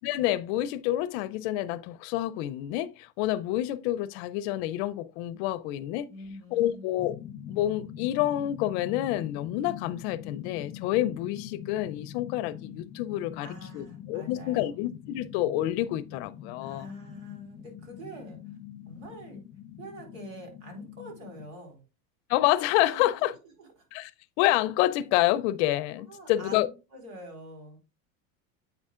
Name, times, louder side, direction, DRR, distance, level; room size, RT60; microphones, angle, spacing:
voice 1, 0.0-6.1 6.5-7.2 7.5-13.5 13.7-16.9 22.3-23.3 23.9-24.1 24.4-26.7, left 14 dB, 55° left, 0.5 m, -28 dB
voice 2, 6.1-7.0 13.4-14.7 16.6-18.4 18.9-19.4 19.8-21.8 22.9-23.3 23.6-23.7 26.1-27.8, equal, 85° right, 3.9 m, -45 dB
sound 1, 7.0-21.5, left 10 dB, 25° left, 0.9 m, -44 dB
8.1 x 5.4 x 2.4 m
supercardioid pair, 150°, 40 cm